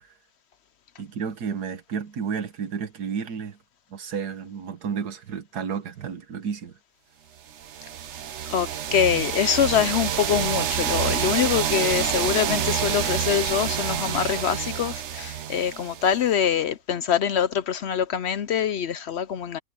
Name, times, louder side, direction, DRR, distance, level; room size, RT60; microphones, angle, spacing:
voice 1, 1.0-3.6 3.9-6.7, right 6 dB, 75° right, 1.8 m, -31 dB
sound 1, 7.6-16.3, right 9 dB, 55° right, 0.9 m, -28 dB
voice 2, 8.5-19.6, left 8 dB, 70° left, 0.6 m, -24 dB
omnidirectional pair, 1.7 m